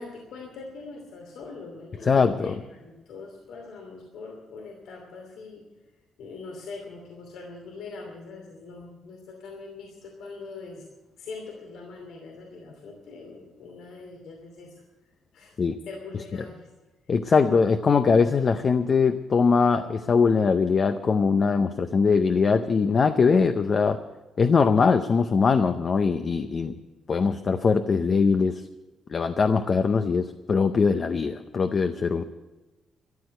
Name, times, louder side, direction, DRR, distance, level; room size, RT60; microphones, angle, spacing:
voice 1, 0.0-5.7 6.2-10.8 11.2-14.7 15.3-15.6 15.9-16.7, left 3 dB, 85° left, 0 dB, 2.7 m, -42 dB
voice 2, 2.0-2.6 15.6-15.8 17.1-24.0 24.4-26.8 27.1-28.6 29.1-32.2, left 5 dB, 35° left, 9 dB, 0.5 m, -21 dB
14.0 x 11.5 x 7.8 m, 1.1 s
cardioid pair, 170°, 0 cm